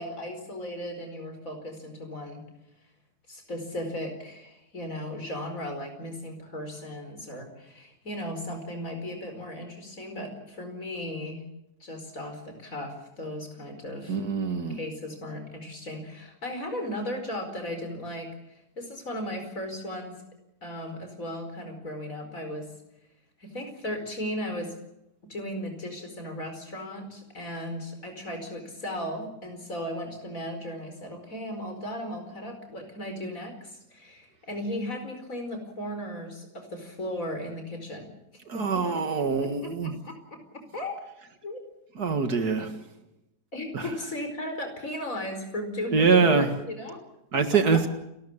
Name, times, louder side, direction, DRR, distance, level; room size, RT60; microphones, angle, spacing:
voice 1, 0.0-2.4 3.3-11.4 11.8-14.2 14.7-20.1 20.6-22.7 23.4-24.7 25.3-38.1 38.5-39.0 39.6-40.4 40.7-40.9 41.4-41.6 43.5-47.0 47.3-47.4, left 1 dB, 50° left, 6 dB, 5.1 m, -36 dB
voice 2, 14.1-14.8 38.5-39.9 42.0-42.7 43.7-43.9 45.9-46.5 47.3-47.9, right 5 dB, 65° right, 8 dB, 2.4 m, -24 dB
29.0 x 13.5 x 8.8 m, 0.88 s
omnidirectional pair, 1.8 m